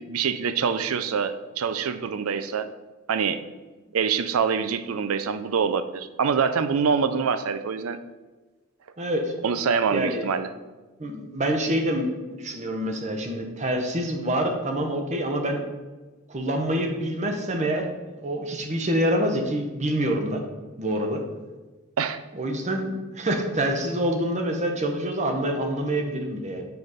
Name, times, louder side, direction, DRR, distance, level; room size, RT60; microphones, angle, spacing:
voice 1, 0.0-2.7 3.1-3.4 3.9-8.0 9.4-10.5 22.0-22.2, right 6 dB, 80° right, 11 dB, 0.5 m, -25 dB
voice 2, 9.0-9.3 9.9-10.3 11.0-15.6 16.3-17.9 18.2-20.4 20.8-21.2 22.3-26.7, right 1 dB, 35° right, 4 dB, 0.8 m, -26 dB
6.8 x 4.2 x 5.0 m, 1.2 s
head